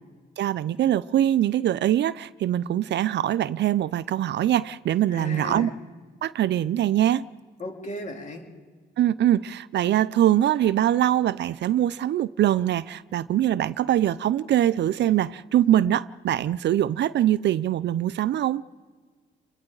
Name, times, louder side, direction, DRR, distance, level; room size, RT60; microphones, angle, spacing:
voice 1, 0.4-5.7 6.2-7.2 9.0-18.6, right 12 dB, 60° right, 0.5 m, -23 dB
voice 2, 5.1-5.7 7.6-8.5, left 1 dB, 35° left, 3.5 m, -35 dB
29.5 x 22.5 x 4.0 m
cardioid pair, 90°, 20 cm